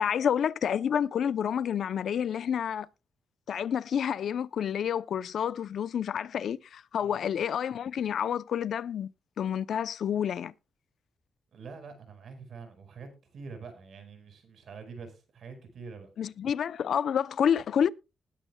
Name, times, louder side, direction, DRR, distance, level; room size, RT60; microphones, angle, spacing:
voice 1, 0.0-2.9 3.5-9.1 9.4-10.5 16.2-17.9, left 8 dB, 65° left, 0.7 m, -29 dB
voice 2, 11.5-16.1, right 5 dB, 60° right, 5.1 m, -45 dB
20.5 x 10.0 x 2.3 m
cardioid pair, 95°, 0 cm